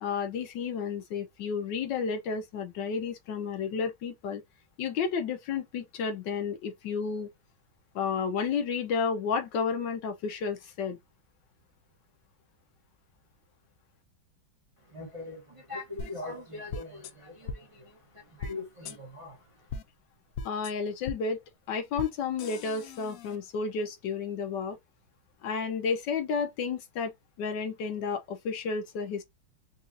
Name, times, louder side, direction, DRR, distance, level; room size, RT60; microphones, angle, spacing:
voice 1, 0.0-4.4 4.8-7.3 7.9-11.0 20.4-21.4 21.7-24.8 25.4-27.1 27.4-29.2, left 5 dB, 70° left, 1.3 m, -31 dB
voice 2, 14.8-19.8, left 3 dB, 25° right, 0.7 m, -42 dB
sound 1, 16.0-16.1 16.7-17.1 17.5-17.6 18.4-18.5 18.8-19.0 19.7-19.8 20.3-20.7 21.0-21.2 22.0-22.1 22.4-23.4, left 4 dB, 90° left, 0.7 m, -38 dB
4.1 x 2.4 x 2.5 m
omnidirectional pair, 2.1 m